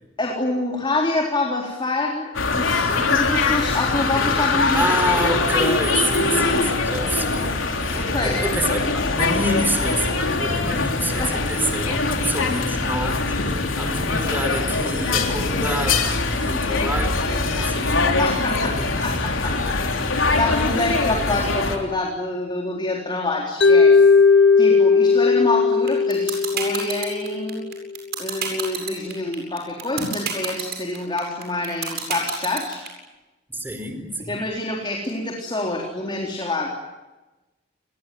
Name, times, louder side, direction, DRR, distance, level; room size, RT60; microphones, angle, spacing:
voice 1, 0.2-4.8 7.9-8.5 11.2-11.4 18.2-19.6 20.0-24.0 24.6-27.6 28.2-32.8 34.3-36.7, left 2 dB, 25° left, 0 dB, 3.9 m, -26 dB
sound 1, 2.3-21.8, left 3 dB, 85° left, 3.7 m, -22 dB
voice 2, 4.7-18.1 18.6-19.1 19.4-19.5 33.5-34.5, right 1 dB, 10° right, 6 dB, 4.5 m, -28 dB
Mallet percussion, 23.6-27.7, left 4 dB, 65° left, 1.5 m, -16 dB
sound 2, 25.9-32.9, right 6 dB, 55° right, 8.0 m, -27 dB
30.0 x 21.0 x 9.4 m, 1.1 s
head